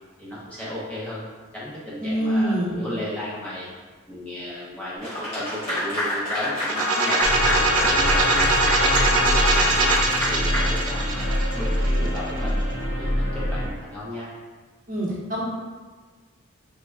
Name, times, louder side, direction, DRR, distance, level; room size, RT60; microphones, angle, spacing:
voice 1, 0.2-1.2 1.5-3.7 4.1-12.6 13.0-14.3, left 1 dB, 5° left, -9 dB, 0.5 m, -34 dB
voice 2, 2.0-2.7 14.9-15.4, right 1 dB, 40° right, -6 dB, 0.8 m, -24 dB
Clapping / Applause, 5.0-11.4, equal, 80° left, 1.5 m, -28 dB
sound 1, 6.6-12.4, right 2 dB, 85° right, 0.4 m, -22 dB
sound 2, 7.2-13.7, equal, 65° left, 0.9 m, -25 dB
3.4 x 2.0 x 3.3 m, 1.4 s
head